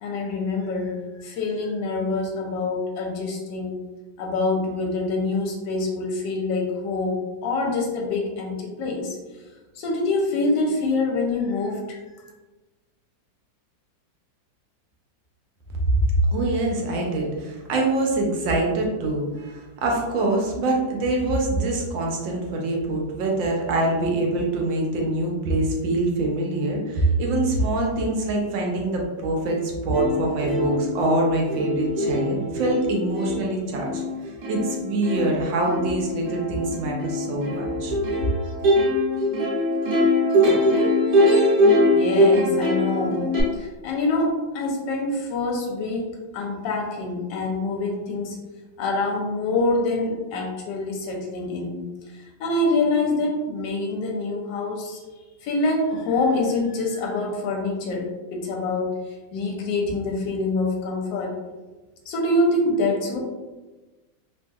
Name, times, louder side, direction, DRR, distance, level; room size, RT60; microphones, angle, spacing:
voice 1, 0.0-3.8 4.2-9.2 9.8-12.0 41.9-43.3 43.5-48.4 48.8-51.9 52.2-55.0 55.4-59.0 59.3-61.4 62.1-63.2, left 2 dB, 80° left, -1 dB, 1.2 m, -25 dB
voice 2, 16.3-34.0 34.5-38.0, right 2 dB, 85° right, 0 dB, 1.4 m, -24 dB
Plucked string instrument, 29.5-29.6 29.9-43.4, left 1 dB, 70° right, 1.3 m, -22 dB
3.3 x 2.7 x 2.3 m, 1.2 s
omnidirectional pair, 2.0 m